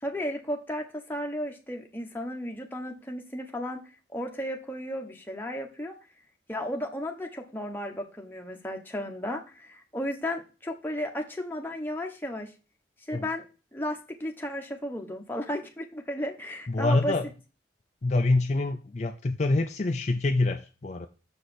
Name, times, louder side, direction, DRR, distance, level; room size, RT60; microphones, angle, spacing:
voice 1, 0.0-3.8 4.1-6.0 6.5-12.5 13.1-13.4 13.7-17.2, equal, 10° left, 1.1 m, -34 dB
voice 2, 16.7-17.3 18.0-21.1, left 2 dB, 40° left, 0.5 m, -26 dB
6.8 x 4.9 x 4.2 m
head